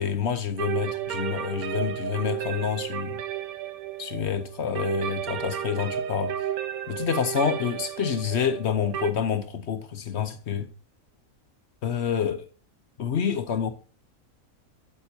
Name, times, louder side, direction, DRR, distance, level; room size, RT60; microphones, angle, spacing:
voice 1, 0.0-3.2 4.0-6.4 6.9-10.7 11.8-12.5 13.0-13.7, left 7 dB, 55° left, 0.9 m, -28 dB
sound 1, 0.6-9.1, right 10 dB, 85° right, 1.3 m, -33 dB
8.8 x 8.5 x 2.7 m
omnidirectional pair, 1.5 m